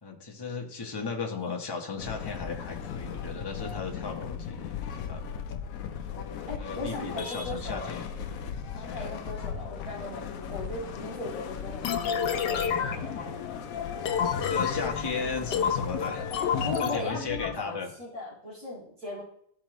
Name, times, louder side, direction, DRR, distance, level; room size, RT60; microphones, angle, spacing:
voice 1, 0.0-5.6 6.6-9.1 14.3-16.3 16.5-17.9, left 4 dB, 15° left, 1 dB, 0.9 m, -36 dB
sound 1, 2.0-16.8, left 7 dB, 65° left, 0.9 m, -37 dB
voice 2, 6.5-7.9 8.7-13.7 16.6-19.2, left 2 dB, 55° right, -6 dB, 4.7 m, -38 dB
sound 2, 11.8-17.6, left 7 dB, 80° left, 1.4 m, -30 dB
13.5 x 5.0 x 3.0 m, 0.67 s
omnidirectional pair, 1.9 m